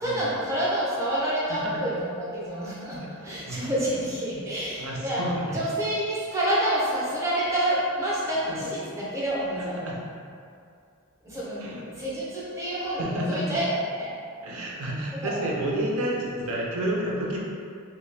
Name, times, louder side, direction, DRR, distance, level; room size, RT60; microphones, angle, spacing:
voice 1, 0.0-5.2 5.5-9.9 11.2-13.7 13.9-14.1 15.2-15.5, right 1 dB, 15° right, -8 dB, 0.6 m, -28 dB
voice 2, 1.5-1.8 3.2-3.7 4.8-5.6 8.5-8.6 9.8-10.0 11.6-11.8 13.0-13.6 14.4-17.4, right 1 dB, 75° right, -3 dB, 0.6 m, -30 dB
2.8 x 2.2 x 3.2 m, 2.3 s
head